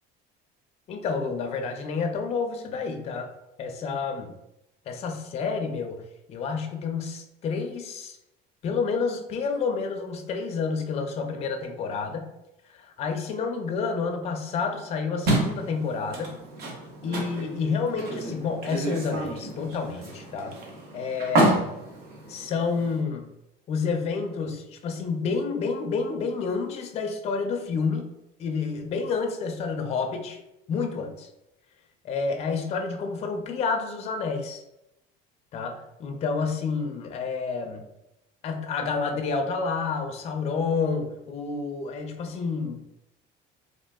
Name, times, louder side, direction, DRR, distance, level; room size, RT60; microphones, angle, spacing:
voice 1, 0.9-3.3 3.6-4.3 4.9-6.0 6.3-8.2 8.6-12.3 12.7-16.3 17.0-20.5 20.9-21.7 22.3-23.2 23.7-28.1 28.4-30.4 30.7-31.3 32.0-34.6 35.5-37.8 38.4-42.8, left 5 dB, 30° left, 4 dB, 0.4 m, -29 dB
sound 1, 15.3-23.0, right 1 dB, 55° right, 0.8 m, -29 dB
3.4 x 2.4 x 2.2 m, 0.89 s
cardioid pair, 135°, 20 cm